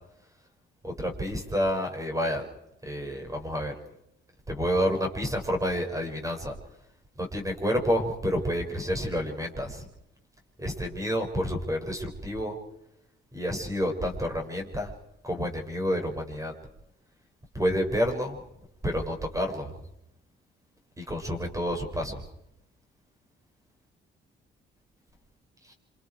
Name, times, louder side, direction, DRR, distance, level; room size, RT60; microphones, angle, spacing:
voice 1, 0.8-2.5 2.8-3.7 4.5-6.6 7.2-9.9 10.6-12.6 13.3-14.9 15.2-16.5 17.5-18.4 18.8-19.8 21.0-22.3 25.6-25.7, equal, 15° right, 3 dB, 6.1 m, -29 dB
27.5 x 27.0 x 4.7 m, 0.83 s
cardioid pair, 90°, 20 cm